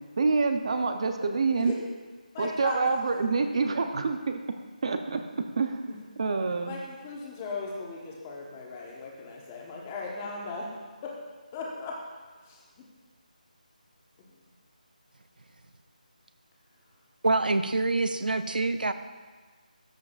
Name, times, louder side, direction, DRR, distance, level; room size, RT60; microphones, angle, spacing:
voice 1, 0.2-1.7 2.4-4.4 4.8-5.2 5.6-6.8, right 4 dB, 45° right, 7 dB, 0.7 m, -27 dB
voice 2, 2.3-2.8 6.7-10.7 11.0-11.1 11.5-11.9 12.5-12.6, left 4 dB, 15° left, -2 dB, 1.2 m, -37 dB
voice 3, 17.2-18.9, right 3 dB, 85° right, 11 dB, 0.6 m, -26 dB
13.0 x 7.8 x 2.5 m, 1.4 s
figure-of-eight pair, 165°, 5 cm